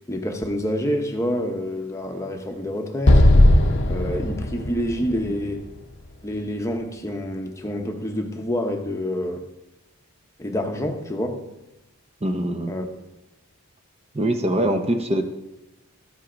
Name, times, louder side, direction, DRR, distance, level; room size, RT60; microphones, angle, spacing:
voice 1, 0.1-3.3 3.9-5.6 6.2-9.5 10.4-11.4 12.7-12.9 14.6-14.7, equal, 15° left, 3 dB, 0.8 m, -27 dB
Explosion, 3.1-6.3, left 1 dB, 50° left, 0.7 m, -18 dB
voice 2, 12.2-12.8 14.1-15.2, right 1 dB, 25° right, 5 dB, 0.7 m, -23 dB
13.5 x 5.5 x 5.1 m, 0.98 s
head